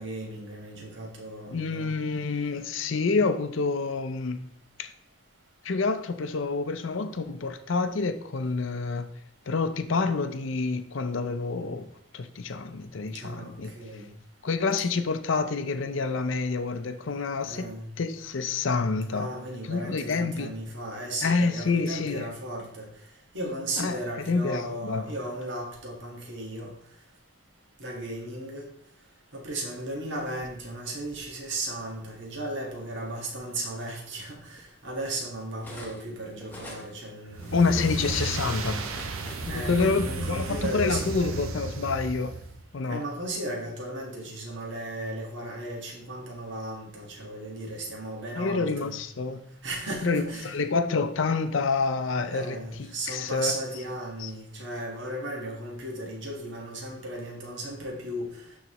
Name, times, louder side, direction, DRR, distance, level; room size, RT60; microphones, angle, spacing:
voice 1, 0.0-1.9 13.1-14.0 17.4-17.9 19.1-22.9 23.3-26.7 27.8-28.7 29.3-37.9 39.5-41.4 42.9-48.9 49.6-50.5 52.0-58.3, right 1 dB, 60° right, 1.6 m, -36 dB
voice 2, 1.5-4.4 4.8-4.9 5.6-9.1 9.5-11.9 12.1-13.7 14.4-17.7 18.0-19.3 19.6-20.5 21.2-22.3 23.8-24.0 24.3-25.0 37.5-38.8 39.5-42.4 42.7-43.0 48.4-49.4 50.0-53.5 54.2-54.3, left 4 dB, 65° left, 0.6 m, -28 dB
Cutlery silverware, 30.0-31.3 32.3-32.4 32.9-36.1 36.4-39.5, left 1 dB, 10° left, 0.9 m, -47 dB
sound 1, 37.3-42.6, right 3 dB, 85° right, 0.8 m, -34 dB
12.0 x 4.0 x 3.0 m
head